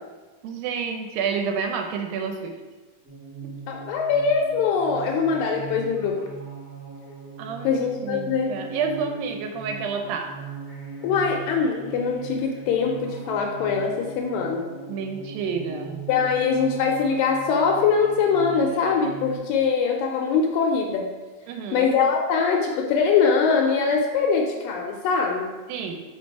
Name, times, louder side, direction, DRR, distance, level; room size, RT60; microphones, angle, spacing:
voice 1, 0.4-2.5 3.4-3.5 7.4-10.4 14.9-16.0 21.5-21.9 25.7-26.0, right 5 dB, 80° right, 4 dB, 2.2 m, -29 dB
sound 1, 3.0-19.4, right 5 dB, 35° right, 1.0 m, -39 dB
voice 2, 3.7-6.2 7.6-8.5 11.0-14.7 16.1-21.1 21.7-25.5, left 5 dB, 80° left, 1 dB, 2.1 m, -22 dB
5.2 x 4.3 x 4.6 m, 1.3 s
omnidirectional pair, 4.3 m